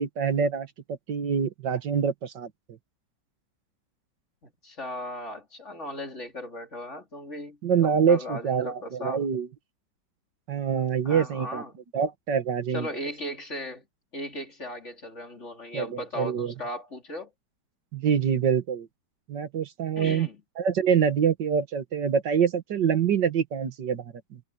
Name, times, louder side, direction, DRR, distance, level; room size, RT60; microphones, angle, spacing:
voice 1, 0.0-2.5 7.6-9.5 10.5-11.6 11.9-12.9 15.7-16.5 17.9-18.9 19.3-20.3 20.6-24.4, right 7 dB, 80° right, 2.1 m, -25 dB
voice 2, 4.4-9.2 11.1-11.8 12.7-13.9 14.1-17.3 19.9-20.4, left 1 dB, 40° left, 3.5 m, -37 dB
omnidirectional pair, 1.9 m